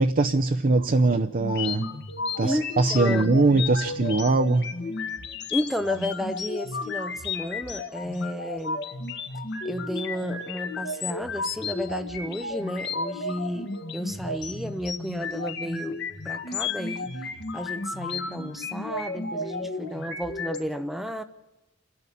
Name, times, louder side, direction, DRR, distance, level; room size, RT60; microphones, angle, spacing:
voice 1, 0.0-1.9 2.4-4.7, right 3 dB, 45° right, 7 dB, 0.6 m, -22 dB
sound 1, 1.4-20.6, left 4 dB, 60° left, 1.7 m, -33 dB
voice 2, 2.4-3.4 5.5-8.9 9.6-21.2, equal, ahead, 9 dB, 0.6 m, -32 dB
28.5 x 11.0 x 8.5 m, 1.1 s
head